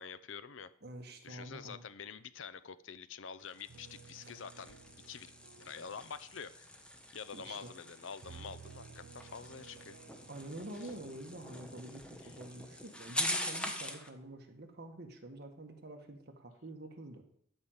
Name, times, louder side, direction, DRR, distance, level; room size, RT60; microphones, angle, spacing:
voice 1, 0.0-0.7 1.2-4.8 5.1-5.3 5.6-6.8 7.1-10.0 10.8-10.9 12.2-12.3, left 6 dB, 75° left, 15 dB, 0.6 m, -47 dB
voice 2, 0.8-1.8 4.2-4.3 7.3-7.7 10.3-17.2, right 1 dB, 55° right, 4 dB, 1.7 m, -47 dB
sound 1, 3.4-14.1, left 1 dB, 5° left, 1.1 m, -43 dB
sound 2, 3.7-7.8 8.2-13.7 14.2-14.6, right 6 dB, 75° right, 0.6 m, -58 dB
12.0 x 5.1 x 7.3 m, 0.68 s
head